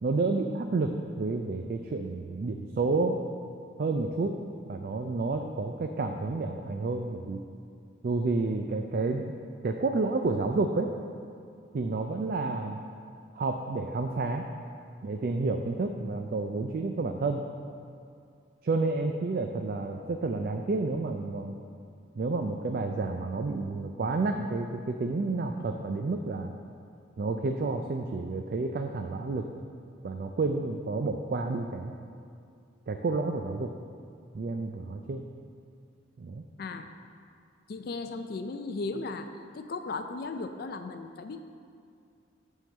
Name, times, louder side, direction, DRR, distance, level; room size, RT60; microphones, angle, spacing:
voice 1, 0.0-3.2 3.8-4.4 4.7-7.4 8.0-9.3 9.6-10.9 11.7-12.8 13.3-14.5 15.0-17.5 18.6-21.6 22.2-26.5 27.2-29.5 30.0-31.9 32.9-33.7 34.3-35.2 36.2-36.4, right 3 dB, 50° right, 4 dB, 0.4 m, -30 dB
voice 2, 37.7-39.3 39.5-41.5, left 3 dB, 50° left, 7 dB, 0.4 m, -36 dB
9.0 x 3.8 x 7.0 m, 2.4 s
head